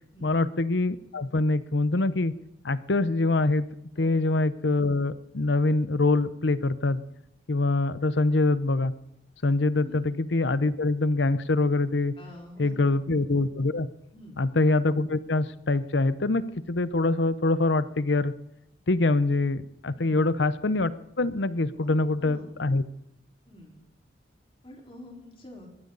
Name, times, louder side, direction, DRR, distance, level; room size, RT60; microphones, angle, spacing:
voice 1, 0.2-2.3 2.6-3.7 4.0-7.0 7.5-8.9 9.4-12.1 12.6-13.9 14.4-16.4 16.7-18.3 18.9-20.9 21.2-22.8, left 2 dB, 70° left, 15 dB, 0.8 m, -24 dB
voice 2, 12.2-12.9 14.1-14.4 20.0-20.2 21.8-22.6 23.5-23.8 24.6-25.7, left 1 dB, 30° left, -1 dB, 4.4 m, -46 dB
21.5 x 15.0 x 4.1 m, 0.82 s
head